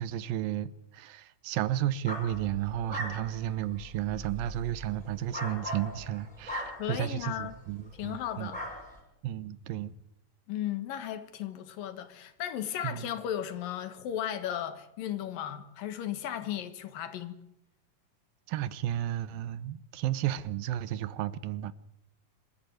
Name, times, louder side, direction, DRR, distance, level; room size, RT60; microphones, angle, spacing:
voice 1, 0.0-8.5 9.2-9.9 12.8-13.1 18.5-21.7, right 12 dB, 90° right, 2.7 m, -33 dB
sound 1, 2.1-7.6 8.0-8.2 8.5-9.0, equal, ahead, 7.1 m, -40 dB
voice 2, 6.8-7.6 8.0-8.6 10.5-17.4, left 10 dB, 80° left, 3.2 m, -35 dB
26.5 x 13.5 x 9.4 m
omnidirectional pair, 3.9 m